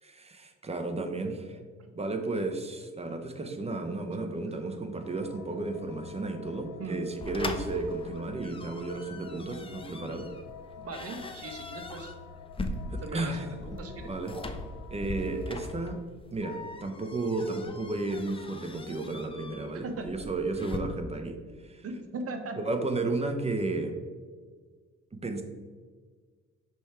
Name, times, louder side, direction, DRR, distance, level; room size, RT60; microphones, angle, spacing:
voice 1, 0.0-1.6 1.9-10.3 12.9-13.4 14.1-14.3 14.9-16.0 16.3-21.8 22.6-23.9 25.2-25.4, right 2 dB, 20° right, 5 dB, 0.8 m, -33 dB
sound 1, 4.9-16.0, left 7 dB, 75° left, 0.6 m, -49 dB
sound 2, 7.2-20.8, left 2 dB, 20° left, 0.6 m, -41 dB
voice 2, 10.8-12.1 13.0-14.1 19.8-20.1 21.8-22.8, right 2 dB, 50° right, 5 dB, 1.0 m, -39 dB
6.1 x 3.5 x 4.4 m, 1.5 s
cardioid pair, 90°, 30 cm